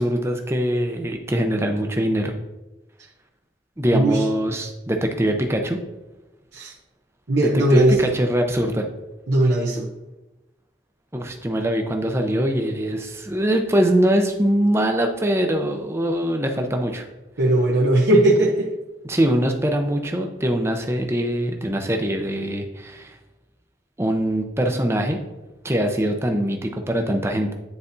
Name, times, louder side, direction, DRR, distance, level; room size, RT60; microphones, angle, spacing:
voice 1, 0.0-2.3 3.8-5.8 7.3-8.8 11.1-17.0 19.1-23.2 24.0-25.2 25.6-27.5, right 1 dB, 15° right, 4 dB, 0.6 m, -22 dB
voice 2, 3.9-4.2 6.5-6.7 7.3-8.1 9.3-9.9 17.4-18.7, right 1 dB, 80° right, -3 dB, 0.9 m, -18 dB
9.8 x 4.1 x 2.7 m, 1.1 s
head